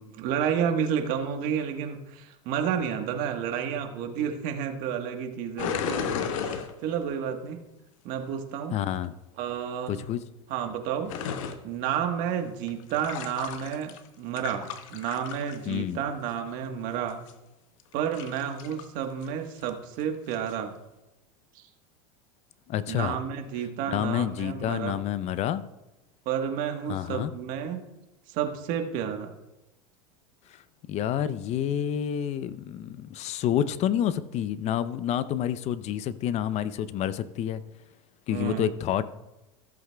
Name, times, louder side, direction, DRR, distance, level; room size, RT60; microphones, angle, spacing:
voice 1, 0.0-7.6 8.0-8.7 9.4-10.0 10.5-11.1 11.6-17.2 17.9-20.7 21.5-21.6 22.9-25.0 26.2-27.9 28.3-29.3 38.3-38.7, right 8 dB, 55° right, 5 dB, 1.3 m, -31 dB
sound 1, 5.6-7.1 11.1-11.6 12.7-14.1 14.4-15.7 17.1-17.3 17.9-18.9 19.2-19.3 19.6-19.7 20.3-20.6, left 7 dB, 70° left, 0.9 m, -33 dB
voice 2, 8.7-9.1 9.9-10.2 15.7-16.0 22.7-23.2 23.9-25.6 26.9-27.3 30.9-37.6 38.3-39.0, left 10 dB, 40° left, 15 dB, 0.6 m, -28 dB
14.5 x 7.8 x 2.3 m, 0.98 s
hypercardioid pair, 105°, 17 cm